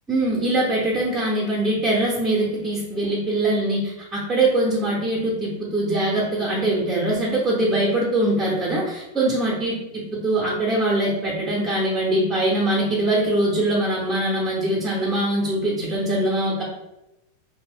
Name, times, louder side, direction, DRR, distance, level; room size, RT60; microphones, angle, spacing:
voice 1, 0.1-16.6, right 1 dB, 15° right, -4 dB, 0.7 m, -22 dB
2.7 x 2.5 x 3.4 m, 0.92 s
figure-of-eight pair, 90°, 0 cm